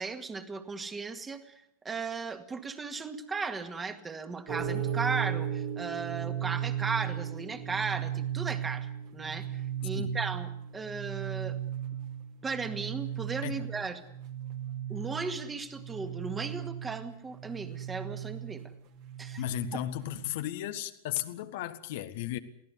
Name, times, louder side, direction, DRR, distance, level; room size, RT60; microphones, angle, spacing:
voice 1, 0.0-11.6 12.4-14.0 14.9-18.6 19.2-19.4, right 4 dB, 15° right, 2.0 m, -36 dB
sound 1, 4.5-20.3, right 10 dB, 45° right, 2.6 m, -36 dB
voice 2, 19.4-22.4, left 14 dB, 50° left, 1.3 m, -35 dB
23.0 x 16.5 x 8.2 m
figure-of-eight pair, 90°, 0 cm